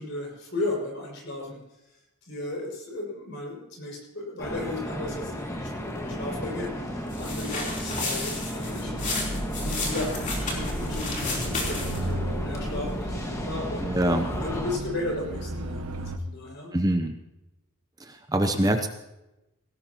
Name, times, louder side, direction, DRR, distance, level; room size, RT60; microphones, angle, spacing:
voice 1, 0.0-1.6 2.3-14.0 14.4-16.7, left 2 dB, 55° left, -1 dB, 6.0 m, -35 dB
sound 1, 4.4-14.8, equal, 15° left, 1.6 m, -34 dB
sound 2, 7.1-12.1, left 3 dB, 35° left, 3.6 m, -32 dB
sound 3, 8.8-16.2, right 1 dB, 85° right, 1.1 m, -35 dB
voice 2, 13.8-14.3 16.7-17.1 18.1-18.9, right 1 dB, 15° right, 6 dB, 0.7 m, -24 dB
18.0 x 17.0 x 3.0 m, 0.95 s
head